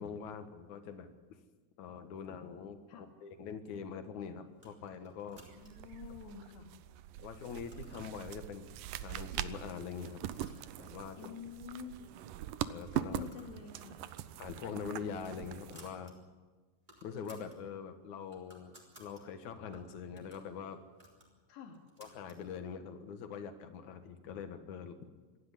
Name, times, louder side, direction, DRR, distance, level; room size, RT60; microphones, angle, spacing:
voice 1, 0.0-1.4 1.8-5.4 7.2-10.2 10.8-11.3 12.7-13.3 14.4-16.2 17.0-20.8 22.0-25.0, left 6 dB, 60° left, 8 dB, 2.4 m, -44 dB
sound 1, 4.5-6.0 6.5-7.0 7.3-8.2 8.9-9.0 9.4-9.7 10.0-11.2 11.6-11.7 11.9-12.0 12.7-13.6 13.9-14.1 14.5-16.1 16.5-16.6 16.8-17.6 18.0-19.2 19.7-22.4, equal, 10° right, 3.8 m, -60 dB
sound 2, 5.4-15.9, right 12 dB, 85° right, 1.9 m, -42 dB
voice 2, 5.5-6.7 11.2-12.0 13.1-14.1 21.5-21.8, left 7 dB, 90° left, 3 dB, 4.5 m, -48 dB
26.0 x 11.5 x 10.0 m, 1.3 s
omnidirectional pair, 4.8 m